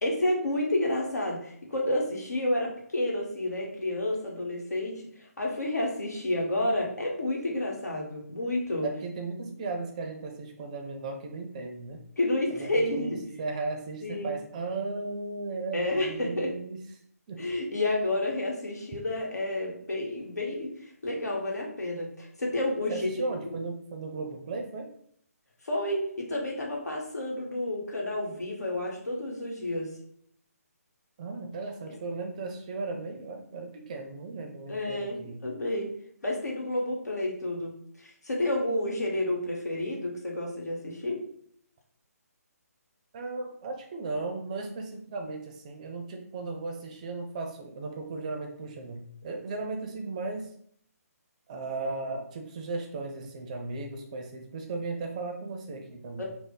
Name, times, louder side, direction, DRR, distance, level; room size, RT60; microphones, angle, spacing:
voice 1, 0.0-5.0 5.4-8.9 12.2-13.2 14.0-14.3 15.7-16.5 17.4-20.7 21.0-23.1 23.4-23.6 25.6-30.0 31.9-32.0 34.7-36.0 36.2-37.8 38.2-41.2 56.2-56.3, left 1 dB, 80° left, -1 dB, 1.2 m, -30 dB
voice 2, 8.8-12.0 12.6-16.8 17.3-17.4 22.9-24.9 31.2-35.5 43.1-50.5 51.5-56.2, right 3 dB, 25° right, 4 dB, 0.4 m, -36 dB
3.3 x 2.0 x 3.8 m, 0.64 s
figure-of-eight pair, 150°, 9 cm